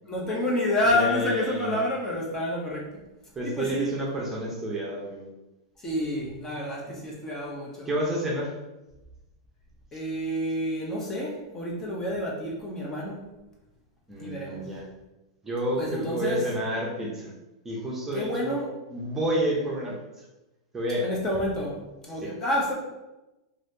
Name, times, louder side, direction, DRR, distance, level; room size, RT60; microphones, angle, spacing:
voice 1, 0.0-3.0 3.4-3.9 5.8-7.9 9.9-13.3 14.2-14.7 15.8-16.4 18.1-18.7 21.0-22.7, left 1 dB, 20° left, -3 dB, 0.7 m, -29 dB
voice 2, 0.9-1.8 3.4-5.3 7.9-8.5 14.1-14.8 15.4-17.3 17.6-18.6 18.9-19.9 20.7-21.1 22.2-22.3, right 1 dB, 15° right, -3 dB, 0.7 m, -29 dB
3.2 x 2.5 x 2.7 m, 1.0 s
hypercardioid pair, 130°, 2 cm